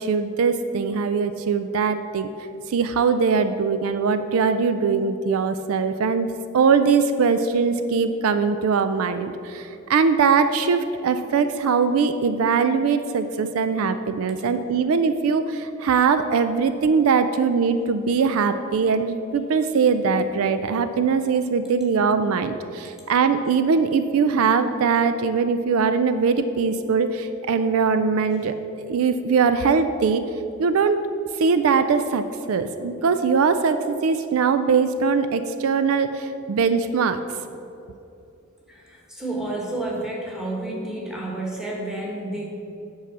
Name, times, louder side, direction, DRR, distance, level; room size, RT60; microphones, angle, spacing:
voice 1, 0.0-2.3 2.7-6.3 6.5-28.5 28.9-30.2 30.6-31.0 31.4-37.2, right 5 dB, 65° right, 10 dB, 0.4 m, -21 dB
voice 2, 38.7-42.5, right 2 dB, ahead, -3 dB, 1.4 m, -30 dB
8.3 x 4.7 x 7.2 m, 2.8 s
head